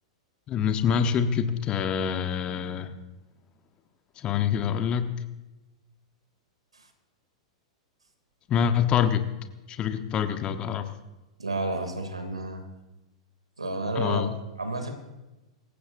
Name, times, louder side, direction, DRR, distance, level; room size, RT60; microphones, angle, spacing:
voice 1, 0.5-2.9 4.2-5.1 8.5-9.2 9.7-10.9 13.9-14.3, left 8 dB, 30° left, 8 dB, 1.2 m, -26 dB
voice 2, 11.4-12.6 13.6-14.9, right 2 dB, 80° right, 6 dB, 2.8 m, -31 dB
26.0 x 15.5 x 2.7 m, 1.0 s
figure-of-eight pair, 100°, 3 cm